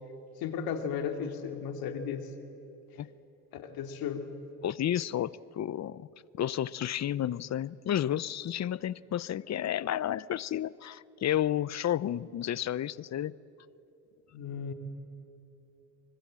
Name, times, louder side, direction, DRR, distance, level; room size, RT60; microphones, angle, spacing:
voice 1, 0.4-2.3 3.5-4.3 14.3-14.7, left 7 dB, 80° left, 2.5 m, -35 dB
voice 2, 4.6-6.1 6.4-13.4, left 11 dB, 50° left, 0.7 m, -31 dB
24.5 x 24.5 x 7.6 m
supercardioid pair, 75°, 35 cm